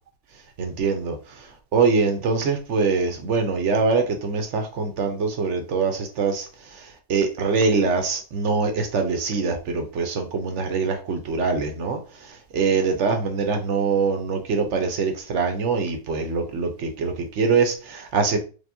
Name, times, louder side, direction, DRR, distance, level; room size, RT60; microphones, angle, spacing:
voice 1, 0.6-18.4, right 4 dB, 60° right, 5 dB, 0.8 m, -24 dB
5.0 x 3.0 x 2.6 m, 0.35 s
omnidirectional pair, 1.9 m